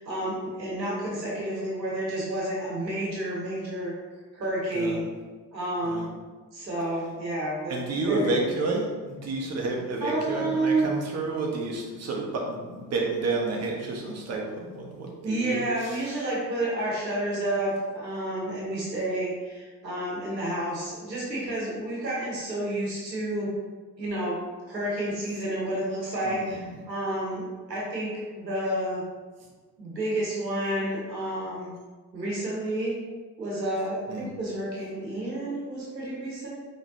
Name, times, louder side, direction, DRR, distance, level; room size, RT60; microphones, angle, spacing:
voice 1, 0.0-3.9 4.3-5.1 5.5-6.1 6.5-8.4 10.0-11.0 15.2-23.5 24.0-29.0 29.8-31.7 32.1-32.9 33.4-36.5, right 1 dB, 90° right, -5 dB, 1.0 m, -30 dB
voice 2, 7.7-16.0 26.2-26.7 34.1-34.3, right 3 dB, 30° right, -1 dB, 1.0 m, -30 dB
5.0 x 3.3 x 2.7 m, 1.3 s
figure-of-eight pair, 50°, 50 cm